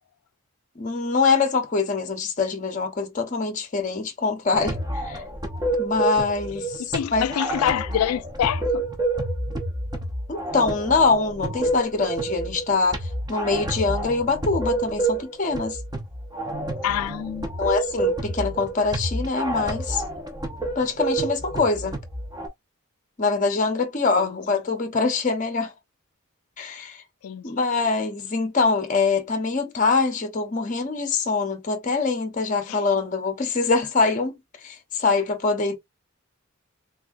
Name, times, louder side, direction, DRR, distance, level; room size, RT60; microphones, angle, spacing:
voice 1, 0.8-5.2 5.8-7.2 10.3-15.8 17.6-20.0 20.8-22.0 23.2-25.7 26.6-27.0 27.4-34.3 34.6-35.7, left 4 dB, 35° left, 0.6 m, -24 dB
sound 1, 4.5-22.5, right 2 dB, 20° right, 0.6 m, -29 dB
voice 2, 6.9-8.8 16.8-17.5 27.2-27.4, left 9 dB, 80° left, 0.3 m, -25 dB
3.5 x 2.6 x 2.4 m
head